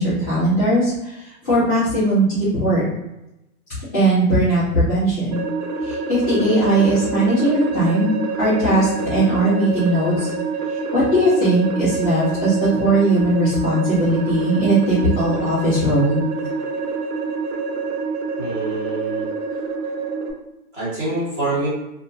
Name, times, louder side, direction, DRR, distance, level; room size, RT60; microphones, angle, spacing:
voice 1, 0.0-2.8 3.9-5.4 5.8-8.1 8.4-10.3 10.9-16.2, right 1 dB, 10° left, -13 dB, 0.4 m, -19 dB
sound 1, 5.3-20.3, right 4 dB, 80° right, 0.7 m, -27 dB
voice 2, 18.4-19.3 20.7-21.7, right 2 dB, 25° right, -9 dB, 1.1 m, -26 dB
2.5 x 2.2 x 2.8 m, 0.93 s
hypercardioid pair, 160°, 43 cm